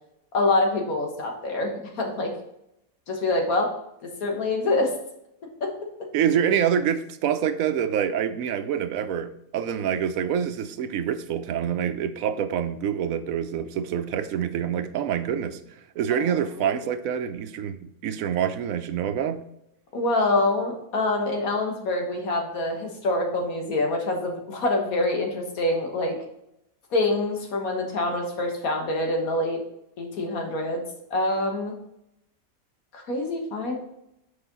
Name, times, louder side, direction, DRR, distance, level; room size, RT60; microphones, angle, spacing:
voice 1, 0.3-2.3 3.1-3.7 4.2-4.9 5.6-5.7 16.1-16.7 19.9-26.2 26.9-29.6 30.0-30.8 31.1-31.7 32.9-33.7, left 2 dB, 85° left, 2 dB, 1.8 m, -25 dB
voice 2, 6.1-15.6 16.0-19.4, right 8 dB, 80° right, 10 dB, 1.0 m, -26 dB
6.8 x 4.8 x 4.0 m, 0.82 s
omnidirectional pair, 1.4 m